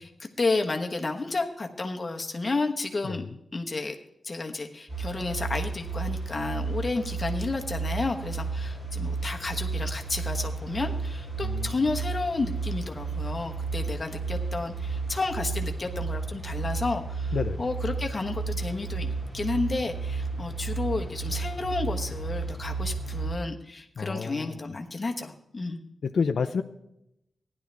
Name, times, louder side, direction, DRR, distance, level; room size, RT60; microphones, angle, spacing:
voice 1, 0.0-3.2 3.5-3.9 4.2-25.8, left 3 dB, 25° left, 3 dB, 1.2 m, -31 dB
sound 1, 4.9-23.3, right 4 dB, 15° right, 4.2 m, -32 dB
voice 2, 11.4-11.8 17.3-17.6 24.0-24.6 26.0-26.6, left 5 dB, 55° left, 7 dB, 0.5 m, -29 dB
15.5 x 11.0 x 3.4 m, 0.81 s
wide cardioid pair, 150°, 0 cm